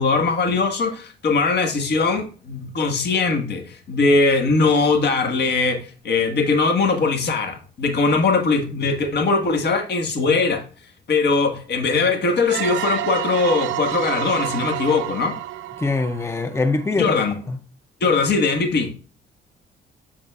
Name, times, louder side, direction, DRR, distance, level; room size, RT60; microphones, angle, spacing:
voice 1, 0.0-10.6 11.1-15.4 16.9-17.3 18.0-18.9, left 4 dB, 55° left, 1.6 m, -20 dB
sound 1, 12.5-17.1, right 14 dB, 80° right, 0.5 m, -29 dB
voice 2, 15.8-17.2 17.5-17.6, left 3 dB, 15° left, 0.5 m, -23 dB
7.8 x 7.0 x 2.4 m
cardioid pair, 90°, 20 cm